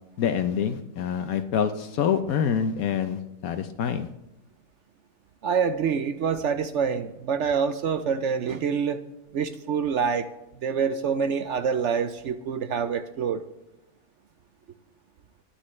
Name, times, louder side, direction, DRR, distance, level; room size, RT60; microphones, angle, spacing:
voice 1, 0.2-4.1, left 8 dB, 70° left, 9 dB, 1.1 m, -26 dB
voice 2, 5.4-9.0 9.3-10.3 10.6-13.4, right 6 dB, 65° right, 11 dB, 0.8 m, -26 dB
21.5 x 9.9 x 3.2 m, 0.92 s
omnidirectional pair, 1.6 m